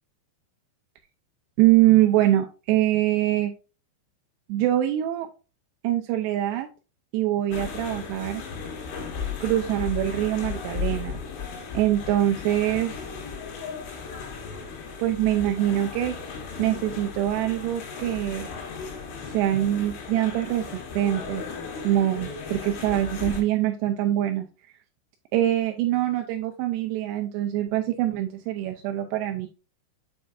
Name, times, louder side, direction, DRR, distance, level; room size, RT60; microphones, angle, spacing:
voice 1, 1.6-3.5 4.5-5.3 5.8-6.7 7.1-8.4 9.4-11.2 11.7-13.0 15.0-16.2 16.6-18.5 19.2-20.7 20.9-21.4 21.8-24.5 25.3-29.5, right 13 dB, 85° right, 5 dB, 2.5 m, -24 dB
sound 1, 7.5-23.4, left 6 dB, 85° left, 4.6 m, -36 dB
9.5 x 4.7 x 2.4 m, 0.33 s
omnidirectional pair, 5.3 m